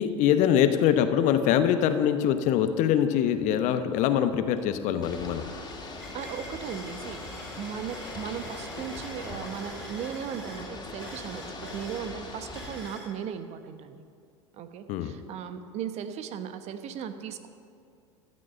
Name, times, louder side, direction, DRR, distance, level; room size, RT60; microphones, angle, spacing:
voice 1, 0.0-5.4 14.9-15.1, left 9 dB, 50° left, 9 dB, 0.9 m, -23 dB
sound 1, 4.6-4.7 5.0-13.1, equal, 5° right, 3.5 m, -46 dB
Ocean / Boat Water vehicle, 5.0-12.9, left 2 dB, 25° left, 2.6 m, -41 dB
voice 2, 6.1-14.0 14.5-17.5, right 8 dB, 45° right, 9 dB, 1.0 m, -37 dB
13.5 x 6.3 x 8.7 m, 2.3 s
hypercardioid pair, 80°, 16 cm